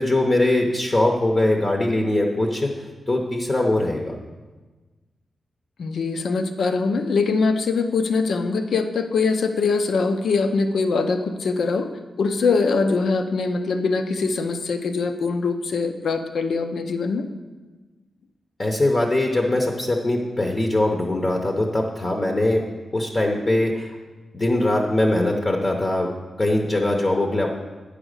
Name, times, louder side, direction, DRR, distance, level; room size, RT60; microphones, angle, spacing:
voice 1, 0.0-2.8 3.1-4.2 18.6-22.6 22.9-24.0 24.3-26.1 26.4-27.5, left 1 dB, 25° left, 1 dB, 0.8 m, -21 dB
voice 2, 5.8-11.9 12.2-17.2, left 4 dB, 70° left, 7 dB, 0.7 m, -22 dB
10.0 x 5.0 x 6.5 m, 1.3 s
wide cardioid pair, 140°, 0 cm